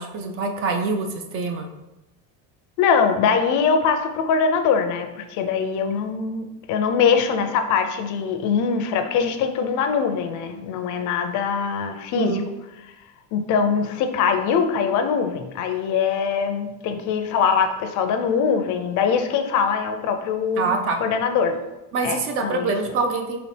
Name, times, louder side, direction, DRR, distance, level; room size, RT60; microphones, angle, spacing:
voice 1, 0.0-1.7 12.2-12.4 20.6-21.0 21.9-23.4, right 3 dB, 40° right, 4 dB, 0.4 m, -25 dB
voice 2, 2.8-12.4 13.3-21.6 22.0-22.7, left 6 dB, 55° left, 6 dB, 0.5 m, -22 dB
4.1 x 2.8 x 3.3 m, 1.0 s
cardioid pair, 150°, 36 cm